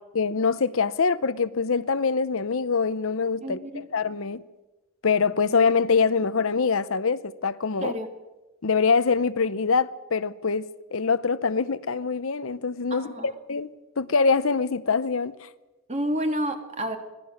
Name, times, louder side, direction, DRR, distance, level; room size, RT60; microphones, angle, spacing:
voice 1, 0.1-4.4 5.0-7.9 8.6-15.5, left 5 dB, 75° left, 0.7 m, -24 dB
voice 2, 3.4-3.8 7.8-8.1 12.9-13.3 15.9-17.0, right 1 dB, 30° right, 2.1 m, -29 dB
25.0 x 17.5 x 6.4 m
head